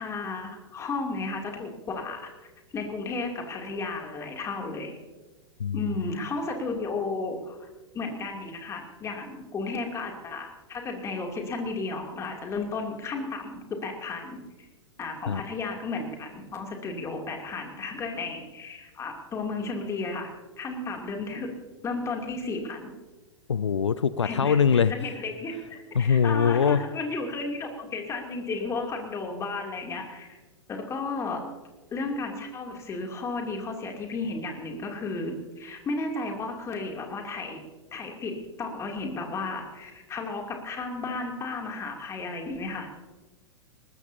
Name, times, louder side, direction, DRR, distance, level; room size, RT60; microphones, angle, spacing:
voice 1, 0.0-4.9 5.7-7.7 7.9-14.4 15.0-21.5 21.8-22.9 24.2-30.4 30.7-31.4 31.9-37.6 37.9-42.9, left 3 dB, 20° left, 2 dB, 2.9 m, -33 dB
voice 2, 5.6-6.0 15.3-15.4 23.5-24.9 25.9-26.8, left 7 dB, 75° left, 16 dB, 0.5 m, -22 dB
21.0 x 19.0 x 2.8 m, 1.2 s
figure-of-eight pair, 100°, 15 cm